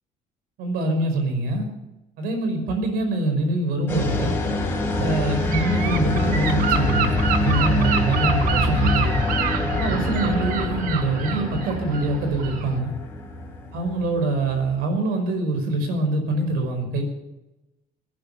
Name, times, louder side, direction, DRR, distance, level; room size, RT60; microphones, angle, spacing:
voice 1, 0.6-1.7 2.2-4.3 4.8-9.2 9.8-12.9 13.7-17.0, right 2 dB, 85° right, 6 dB, 5.5 m, -24 dB
sound 1, 3.9-14.7, left 2 dB, 10° left, 4.3 m, -25 dB
Gull seagull / Wind, 5.5-12.8, right 8 dB, 60° right, 1.6 m, -28 dB
18.5 x 11.0 x 7.0 m, 0.96 s
cardioid pair, 160°, 16 cm